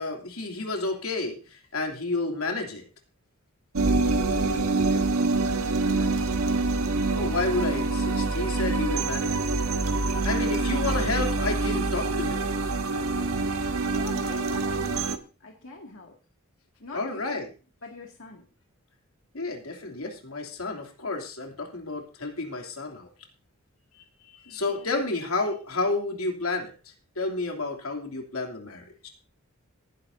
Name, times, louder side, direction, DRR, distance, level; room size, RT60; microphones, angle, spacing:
voice 1, 0.0-2.8 5.9-6.1 7.1-9.4 10.2-12.4 16.9-17.5 19.3-23.1 24.5-26.7 27.2-29.1, left 3 dB, 85° left, 2 dB, 3.0 m, -30 dB
sound 1, 3.8-15.2, right 3 dB, 90° right, 1.3 m, -26 dB
voice 2, 4.4-6.3 13.8-16.1 16.8-17.4 17.8-18.5 24.5-24.9, left 2 dB, 65° left, 0 dB, 2.3 m, -45 dB
19.5 x 11.0 x 2.7 m, 0.34 s
head